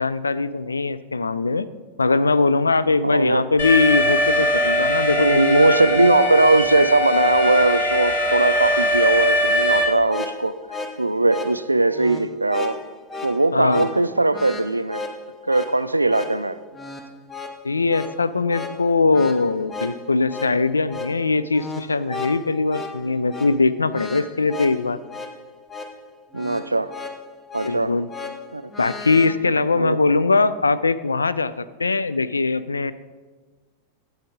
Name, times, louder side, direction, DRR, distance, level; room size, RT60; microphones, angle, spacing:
voice 1, 0.0-1.7 2.0-5.8 13.5-13.9 17.6-25.0 27.6-28.1 28.8-32.9, left 3 dB, 75° left, 14 dB, 0.3 m, -21 dB
voice 2, 3.0-3.4 5.2-10.6 11.0-12.8 13.2-15.0 15.5-16.6 26.3-26.9 27.5-27.9 28.5-28.6 29.7-30.0, right 2 dB, 85° right, 14 dB, 0.3 m, -19 dB
Alarm, 3.6-9.8, left 1 dB, 60° left, 1.9 m, -21 dB
sound 1, 9.9-29.3, left 3 dB, 15° left, 0.8 m, -35 dB
12.5 x 8.6 x 3.8 m, 1.4 s
figure-of-eight pair, 90°, 0 cm